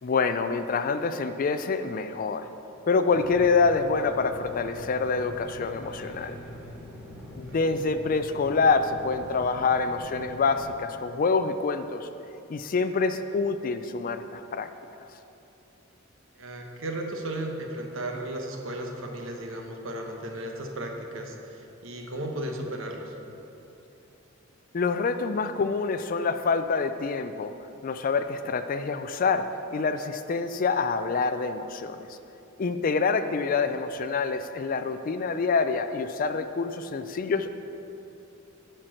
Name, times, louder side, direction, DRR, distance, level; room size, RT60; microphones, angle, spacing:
voice 1, 0.0-2.5 2.9-6.4 7.4-12.1 12.5-14.7 24.7-27.5 27.8-29.4 29.7-32.1 32.6-37.5, left 4 dB, 45° left, 10 dB, 0.4 m, -26 dB
sound 1, 3.1-10.7, left 1 dB, 5° right, 1.6 m, -43 dB
voice 2, 7.1-7.6 16.3-23.1, right 1 dB, 75° right, 2 dB, 1.1 m, -35 dB
10.0 x 4.5 x 6.3 m, 2.9 s
head